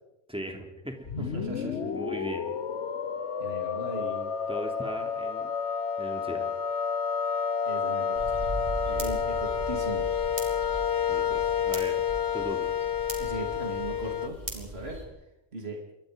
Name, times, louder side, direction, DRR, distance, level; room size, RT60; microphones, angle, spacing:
voice 1, 0.3-1.1 1.9-2.5 4.5-5.5 6.0-6.5 11.1-12.0 12.3-12.7, right 1 dB, 5° right, 3 dB, 3.3 m, -38 dB
sound 1, 1.1-14.3, left 7 dB, 80° left, 1.4 m, -30 dB
voice 2, 1.2-1.9 3.4-4.3 7.6-8.4 8.9-10.1 13.2-15.0 15.5-15.8, right 2 dB, 60° right, 1 dB, 3.3 m, -38 dB
sound 2, 8.1-15.0, right 1 dB, 35° right, 5.2 m, -39 dB
27.5 x 23.5 x 5.3 m, 0.94 s
omnidirectional pair, 1.2 m